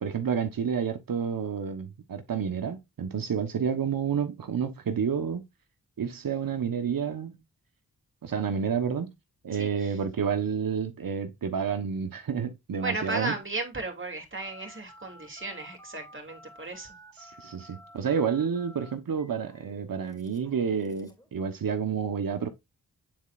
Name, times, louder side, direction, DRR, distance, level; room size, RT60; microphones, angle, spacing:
voice 1, 0.0-5.4 6.0-7.4 8.2-9.1 9.4-13.3 17.2-22.5, right 7 dB, 65° right, 1.1 m, -29 dB
voice 2, 9.5-10.0 12.8-16.9, right 3 dB, 30° right, 2.8 m, -35 dB
Telephone, 14.4-21.3, equal, 10° left, 3.0 m, -52 dB
9.2 x 4.2 x 2.5 m
cardioid pair, 45°, 37 cm